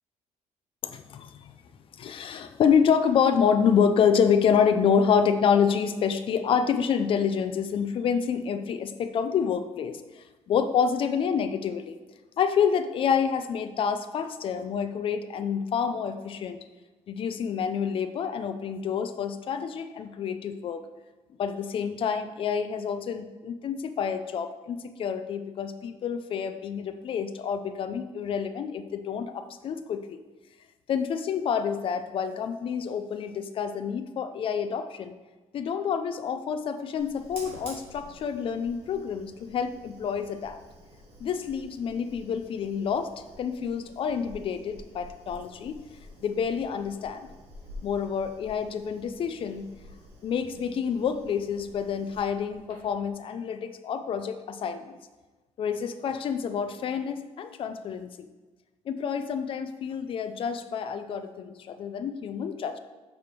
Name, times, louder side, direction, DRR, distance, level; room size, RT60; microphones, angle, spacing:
voice 1, 0.8-1.5 2.0-12.0 12.4-16.6 17.1-20.9 21.4-30.2 30.9-35.1 35.5-40.6 41.2-43.1 43.4-45.8 46.2-47.3 47.8-49.7 50.2-55.0 55.6-58.3 58.9-62.8, left 7 dB, 45° left, 9 dB, 0.5 m, -28 dB
Fire, 37.0-53.1, equal, 55° right, 2.2 m, -49 dB
6.8 x 5.2 x 4.5 m, 1.2 s
cardioid pair, 155°, 12 cm